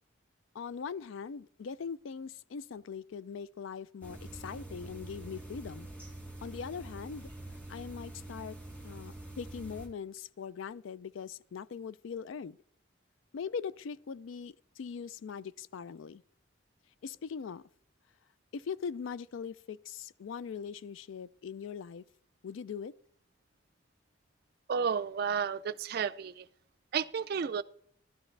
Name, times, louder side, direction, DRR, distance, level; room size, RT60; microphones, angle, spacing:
voice 1, 0.5-5.9 6.4-7.3 7.7-8.6 8.8-12.6 13.3-16.2 17.0-17.6 18.5-22.0 22.4-22.9, left 6 dB, 75° left, 0.4 m, -41 dB
sound 1, 4.0-9.9, right 1 dB, 5° left, 1.7 m, -46 dB
voice 2, 24.7-26.5 26.9-27.6, right 6 dB, 50° right, 0.3 m, -32 dB
13.0 x 12.0 x 3.3 m
head